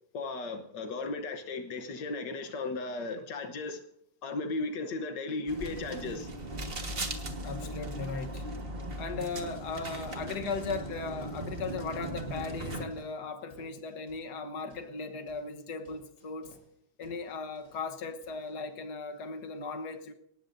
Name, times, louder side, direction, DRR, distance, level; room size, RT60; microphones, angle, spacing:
voice 1, 0.1-3.8 4.2-6.3, left 3 dB, 90° left, 0.9 m, -35 dB
sound 1, 5.5-12.8, right 1 dB, 30° right, 1.0 m, -38 dB
voice 2, 7.4-8.4 9.0-16.5 17.0-20.1, left 4 dB, 60° left, 1.0 m, -37 dB
sound 2, 7.6-8.4 8.8-11.3 11.7-12.0 12.3-13.2 13.5-14.3 14.7-16.7 17.0-18.0 18.2-18.5, equal, 20° left, 6.5 m, -54 dB
21.5 x 19.0 x 2.7 m
omnidirectional pair, 3.5 m